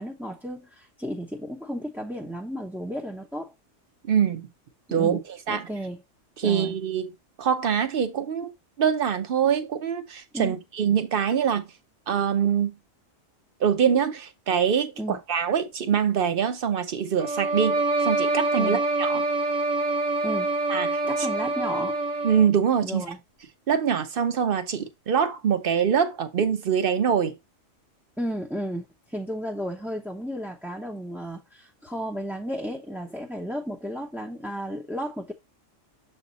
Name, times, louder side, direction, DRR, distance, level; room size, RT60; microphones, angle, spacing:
voice 1, 0.0-3.5 5.0-5.2 5.5-6.0 6.4-6.7 10.3-10.6 15.0-15.2 18.6-18.8 20.2-20.5 21.0-22.0 22.8-23.2 28.2-35.3, equal, ahead, 0.6 m, -33 dB
voice 2, 4.1-4.5 4.9-5.2 5.5-5.7 6.4-7.1 7.4-8.5 8.8-11.7 12.1-12.7 13.6-19.2 20.7-21.0 22.2-23.0 23.7-27.4, right 7 dB, 50° right, 1.0 m, -24 dB
sound 1, 17.2-22.6, right 2 dB, 80° right, 2.0 m, -26 dB
7.1 x 3.5 x 4.0 m
omnidirectional pair, 1.3 m